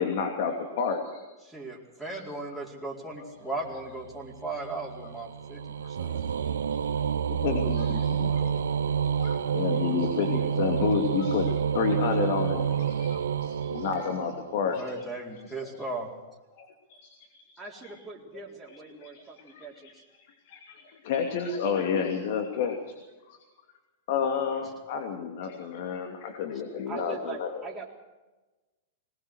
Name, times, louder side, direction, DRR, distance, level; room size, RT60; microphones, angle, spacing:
voice 1, 0.0-1.3 2.0-2.2 3.2-3.3 5.0-5.1 5.8-5.9 6.4-6.8 7.3-8.7 9.2-14.9 15.6-15.7 16.6-17.1 17.4-17.5 17.8-17.9 18.7-19.9 20.4-22.8 23.3-23.4 24.1-27.5, left 6 dB, 60° left, 4 dB, 2.7 m, -31 dB
voice 2, 1.5-6.2 14.6-16.1, right 2 dB, 5° left, -2 dB, 4.7 m, -37 dB
sound 1, 3.7-14.6, right 8 dB, 85° right, 0.9 m, -29 dB
voice 3, 17.6-20.0 26.9-27.9, right 4 dB, 15° right, -4 dB, 3.9 m, -42 dB
20.5 x 19.5 x 6.5 m, 1.2 s
hypercardioid pair, 120°, 0 cm